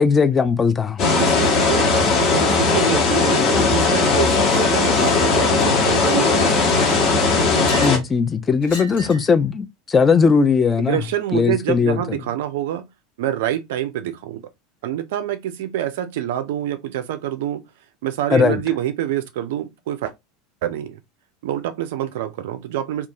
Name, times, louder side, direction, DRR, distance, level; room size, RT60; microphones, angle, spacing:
voice 1, 0.0-1.0 7.8-11.0 11.3-12.0 18.3-18.6, left 5 dB, 20° left, 0.3 m, -18 dB
sound 1, 1.0-8.0, left 4 dB, 40° left, 0.9 m, -18 dB
voice 2, 1.0-6.7 10.8-12.9 13.2-14.4 14.8-17.7 18.0-20.1 20.6-21.0 21.4-23.1, right 12 dB, 60° right, 0.3 m, -26 dB
Chink clink, 4.9-5.2 5.6-6.1 6.6-8.1 8.6-9.3, equal, 60° left, 1.3 m, -35 dB
2.5 x 2.3 x 2.7 m
figure-of-eight pair, 80°, 0 cm